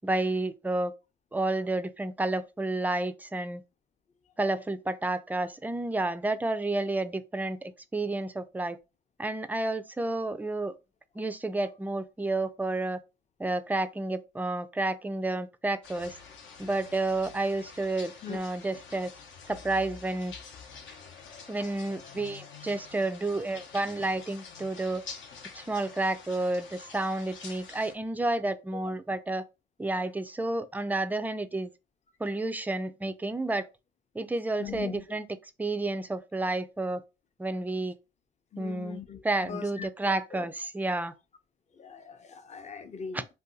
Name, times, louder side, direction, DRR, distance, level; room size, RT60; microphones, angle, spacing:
voice 1, 0.0-0.9 1.3-3.6 4.4-8.8 9.2-10.8 11.2-13.0 13.4-16.2 16.6-19.1 19.5-20.3 21.5-25.0 25.5-29.4 29.8-31.7 32.2-33.7 34.1-35.2 35.6-37.0 37.4-38.0 38.6-39.0 39.2-41.1 43.1-43.2, right 2 dB, 10° right, 0.3 m, -30 dB
sound 1, 15.8-27.9, left 5 dB, 70° left, 0.8 m, -47 dB
voice 2, 34.6-35.0 38.5-40.5 41.7-43.3, left 6 dB, 35° left, 0.6 m, -41 dB
2.7 x 2.2 x 3.8 m
cardioid pair, 90°, 20 cm